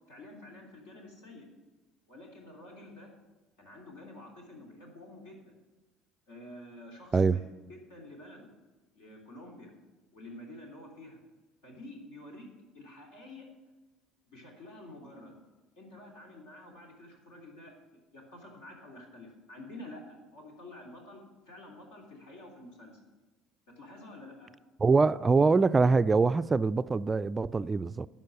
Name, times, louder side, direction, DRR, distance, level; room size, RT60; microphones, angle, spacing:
voice 1, 0.1-1.5 2.1-3.1 3.6-5.5 6.3-7.4 7.7-8.5 8.9-9.7 10.1-11.2 11.6-12.5 12.7-13.5 14.3-15.4 15.8-17.7 18.1-23.0 23.7-24.5, left 1 dB, 75° left, 3.2 m, -49 dB
voice 2, 24.8-28.1, right 4 dB, 25° right, 0.3 m, -24 dB
11.5 x 5.5 x 9.0 m
hypercardioid pair, 70°, 0 cm